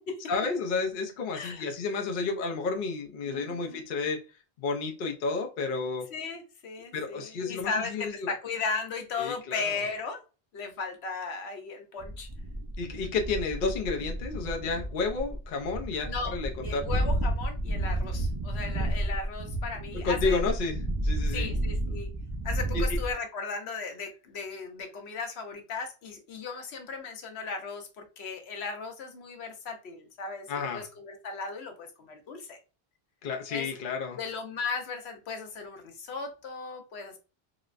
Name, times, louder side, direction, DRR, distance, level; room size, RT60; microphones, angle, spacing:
voice 1, 0.3-4.2 4.6-6.1 6.9-8.3 9.2-9.8 12.8-16.9 19.9-20.8 21.0-21.5 22.7-23.0 30.5-30.9 33.2-34.2, left 4 dB, 60° left, 0.7 m, -31 dB
voice 2, 1.3-1.7 3.2-3.8 6.1-10.2 10.5-12.3 16.0-16.3 16.6-20.4 21.3-22.1 22.4-32.6 33.5-33.7 34.2-37.2, left 4 dB, 80° left, 1.0 m, -36 dB
sound 1, 12.0-23.1, right 1 dB, 40° right, 0.3 m, -31 dB
3.9 x 2.0 x 2.4 m
omnidirectional pair, 1.1 m